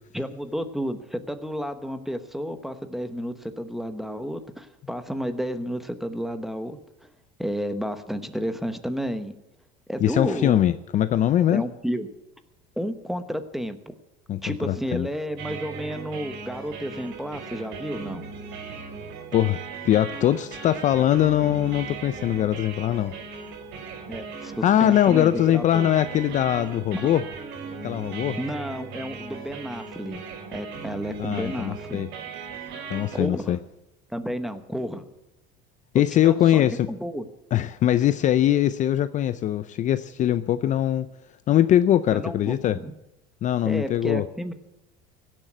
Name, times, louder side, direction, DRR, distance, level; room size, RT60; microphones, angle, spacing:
voice 1, 0.1-7.1 7.4-9.3 9.9-10.6 11.5-12.1 12.8-14.0 14.4-18.2 24.1-25.9 26.9-27.0 28.4-30.2 30.5-32.1 33.1-33.6 34.1-35.0 35.9-36.6 36.9-37.2 42.1-42.9 43.6-44.5, equal, ahead, 9 dB, 1.1 m, -31 dB
voice 2, 10.0-11.6 14.3-15.1 19.3-23.2 24.4-27.2 27.8-28.4 31.2-32.1 32.9-33.6 35.9-36.9 37.5-41.1 41.5-42.8 43.4-44.2, left 11 dB, 40° left, 13 dB, 0.5 m, -22 dB
sound 1, 15.4-33.3, right 5 dB, 65° right, 4.4 m, -38 dB
16.5 x 7.5 x 9.2 m, 0.91 s
cardioid pair, 130°, 20 cm